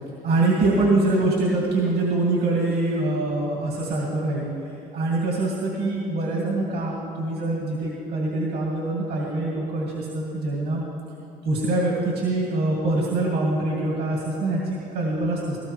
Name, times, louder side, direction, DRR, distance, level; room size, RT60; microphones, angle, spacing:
voice 1, 0.2-4.5 4.9-10.8 11.4-15.6, right 2 dB, 75° right, -4 dB, 2.4 m, -24 dB
18.0 x 13.5 x 3.3 m, 3.0 s
cardioid pair, 110°, 17 cm